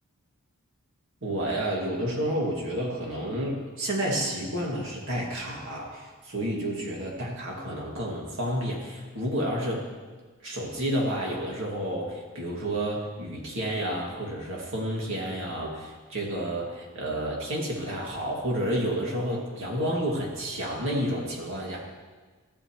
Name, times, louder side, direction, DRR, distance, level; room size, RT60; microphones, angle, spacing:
voice 1, 1.2-9.9 10.4-21.8, right 1 dB, 60° right, -3 dB, 2.2 m, -30 dB
13.5 x 8.7 x 3.1 m, 1.4 s
head